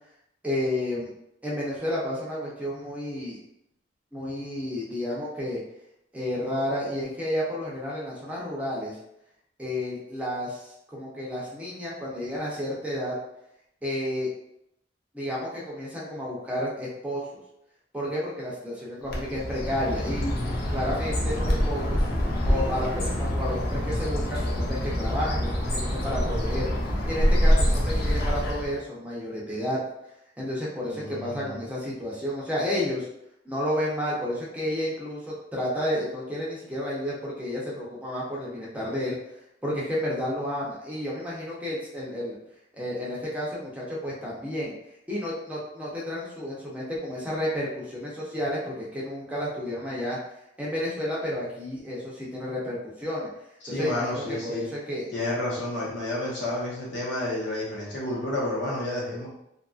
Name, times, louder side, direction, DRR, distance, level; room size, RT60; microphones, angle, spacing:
voice 1, 0.4-1.1 1.4-3.4 4.1-5.6 6.1-9.0 9.6-13.1 13.8-14.3 15.1-17.2 17.9-20.3 20.7-22.0 22.4-26.7 27.1-29.8 30.4-33.1 33.4-39.2 39.6-42.4 42.7-44.7 45.1-50.2 50.6-53.3 53.7-55.1, left 1 dB, 10° right, -6 dB, 0.6 m, -31 dB
Bird, 19.1-28.8, equal, 55° left, 0.6 m, -26 dB
voice 2, 30.8-31.6 53.6-54.6 55.1-59.3, left 1 dB, 90° left, -6 dB, 1.1 m, -30 dB
2.8 x 2.4 x 2.4 m, 0.80 s
head